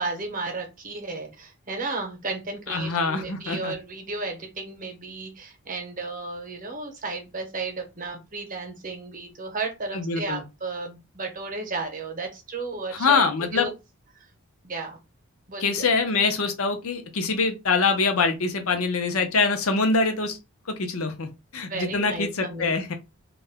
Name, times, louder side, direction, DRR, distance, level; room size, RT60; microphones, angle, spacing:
voice 1, 0.0-13.7 14.6-15.0 15.5-15.9 21.7-22.7, right 3 dB, 40° right, 0.8 m, -33 dB
voice 2, 2.7-3.7 9.9-10.4 12.9-13.7 15.6-20.4 20.8-21.3 21.5-22.9, left 4 dB, 75° left, 0.6 m, -24 dB
2.3 x 2.1 x 3.5 m
head